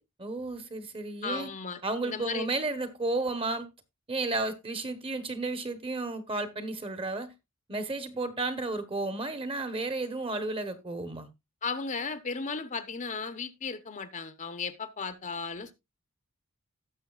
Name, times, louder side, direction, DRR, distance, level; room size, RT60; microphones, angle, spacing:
voice 1, 0.2-1.5 1.8-3.7 4.1-7.3 7.7-11.3, right 2 dB, 25° right, 1.1 m, -32 dB
voice 2, 1.2-2.5 11.6-15.7, left 4 dB, 35° left, 0.9 m, -35 dB
17.5 x 6.5 x 2.4 m
head